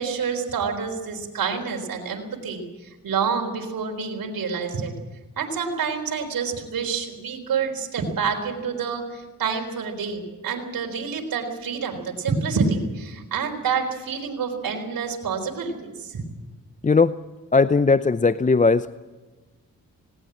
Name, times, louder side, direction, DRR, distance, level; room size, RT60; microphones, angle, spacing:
voice 1, 0.0-4.9 5.4-16.2, right 5 dB, 80° right, 2 dB, 4.0 m, -28 dB
voice 2, 16.8-17.2 17.5-18.9, left 4 dB, 20° left, 14 dB, 0.6 m, -18 dB
20.0 x 18.0 x 8.7 m, 1.2 s
cardioid pair, 65°, 34 cm